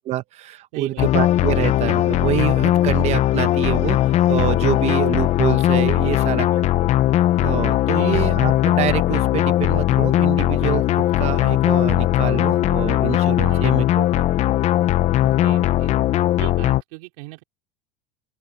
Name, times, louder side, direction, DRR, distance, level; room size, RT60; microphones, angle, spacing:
voice 1, 0.1-6.7 7.4-10.8 11.2-14.2, right 13 dB, 40° right, 0.9 m, -26 dB
voice 2, 0.7-1.1 6.0-6.7 7.9-8.2 13.4-13.7 15.2-15.9 16.4-17.4, right 27 dB, 75° right, 4.9 m, -37 dB
sound 1, 1.0-16.8, left 14 dB, 40° left, 0.8 m, -19 dB
open air
supercardioid pair, 135°, 17 cm